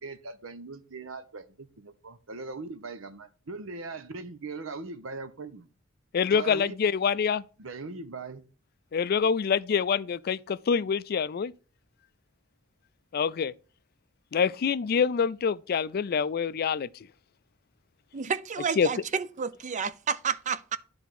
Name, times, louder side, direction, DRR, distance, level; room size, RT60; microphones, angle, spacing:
voice 1, 0.0-5.7 6.3-6.7 7.6-8.4, right 3 dB, 90° right, 0.9 m, -40 dB
voice 2, 6.1-7.4 8.9-11.5 13.1-13.5 14.3-16.9 18.8-18.9, left 6 dB, 50° left, 0.4 m, -26 dB
voice 3, 18.1-20.8, right 6 dB, 35° right, 0.5 m, -30 dB
10.0 x 3.5 x 5.9 m
head